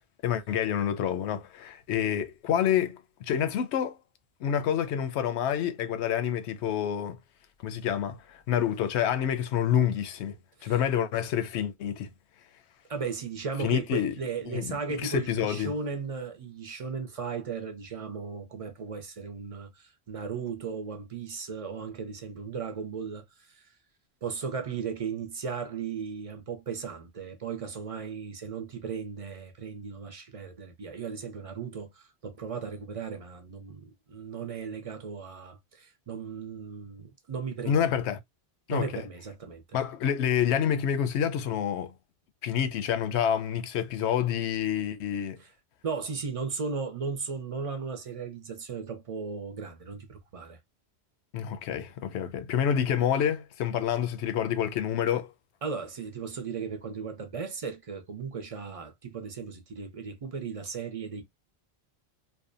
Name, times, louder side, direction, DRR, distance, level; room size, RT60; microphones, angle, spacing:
voice 1, 0.2-4.0 4.4-7.2 7.6-10.4 10.6-12.1 13.6-14.1 14.5-15.7 37.7-38.2 38.7-39.0 39.7-41.9 42.4-45.4 51.3-55.3, left 9 dB, 85° left, 0.8 m, -28 dB
voice 2, 12.9-23.6 24.2-37.8 38.7-39.8 45.4-45.5 45.8-50.6 55.6-61.2, right 5 dB, 45° right, 0.5 m, -36 dB
2.6 x 2.1 x 2.4 m
omnidirectional pair, 1.1 m